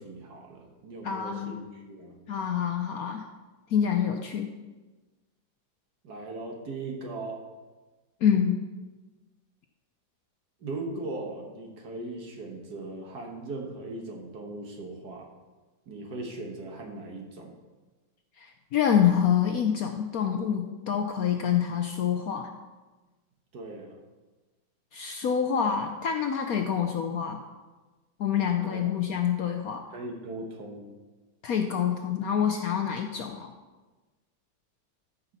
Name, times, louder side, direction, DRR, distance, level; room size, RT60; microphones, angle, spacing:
voice 1, 0.0-2.2 6.0-7.4 10.6-15.3 15.9-17.5 23.5-24.0 28.6-28.8 29.9-30.9, right 2 dB, 60° right, 2 dB, 1.8 m, -39 dB
voice 2, 1.0-1.6 2.3-3.3 3.7-4.5 8.2-8.6 18.4-22.5 24.9-27.4 28.2-29.9 31.4-33.5, left 8 dB, 70° left, 4 dB, 0.9 m, -26 dB
13.0 x 5.6 x 4.1 m, 1.2 s
omnidirectional pair, 2.0 m